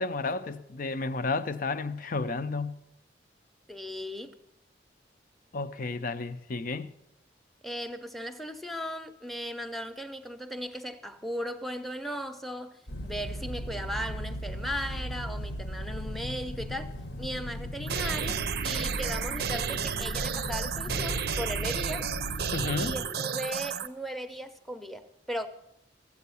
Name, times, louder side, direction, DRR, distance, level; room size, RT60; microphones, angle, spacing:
voice 1, 0.0-2.8 5.5-6.9 22.5-23.0, left 3 dB, 50° left, 0.6 m, -32 dB
voice 2, 3.7-4.3 7.6-16.9 17.2-22.0 22.8-25.5, equal, ahead, 0.7 m, -37 dB
sound 1, 12.9-23.0, equal, 70° left, 1.0 m, -37 dB
sound 2, 17.9-23.9, right 6 dB, 60° right, 0.6 m, -32 dB
14.5 x 8.3 x 7.0 m
head